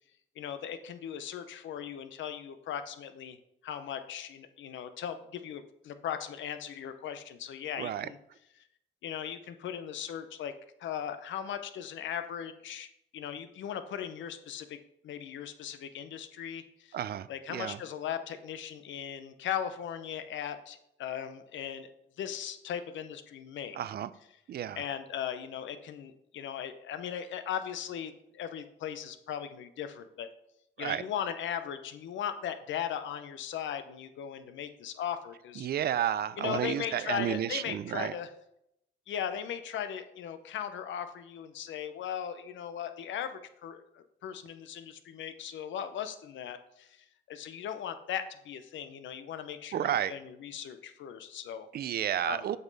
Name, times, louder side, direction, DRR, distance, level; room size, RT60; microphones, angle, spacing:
voice 1, 0.4-3.4 3.6-8.2 9.0-10.5 10.8-12.9 13.1-14.8 15.0-16.9 17.3-21.9 22.2-23.8 24.8-30.3 30.8-35.7 36.4-38.3 39.1-51.7 52.2-52.5, left 9 dB, 70° left, 10 dB, 0.7 m, -38 dB
voice 2, 7.8-8.1 16.9-17.8 23.7-24.1 24.5-24.8 30.8-31.0 35.6-38.1 49.7-50.1 51.7-52.6, right 10 dB, 55° right, 16 dB, 0.4 m, -31 dB
7.9 x 5.5 x 4.0 m, 0.80 s
cardioid pair, 90°, 20 cm